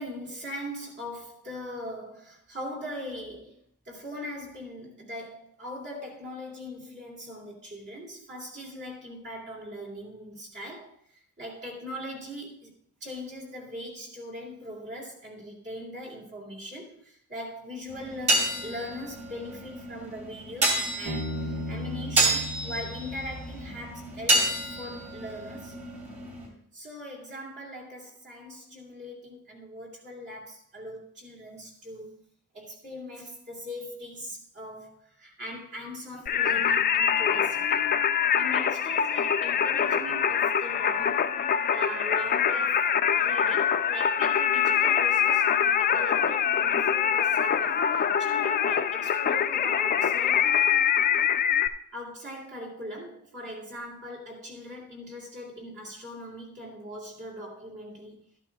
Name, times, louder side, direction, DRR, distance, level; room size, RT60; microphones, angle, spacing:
voice 1, 0.0-3.6 3.9-11.0 11.4-12.7 13.0-25.7 26.7-32.2 32.5-37.9 38.3-41.2 41.7-50.5 51.9-58.1, left 1 dB, 50° right, -3 dB, 2.5 m, -40 dB
sound 1, 17.9-26.5, right 2 dB, 35° right, 2.7 m, -29 dB
Bass guitar, 21.1-24.6, equal, 75° right, 1.9 m, -37 dB
Singing, 36.3-51.7, left 8 dB, 40° left, 0.4 m, -24 dB
12.5 x 11.0 x 2.3 m, 0.62 s
head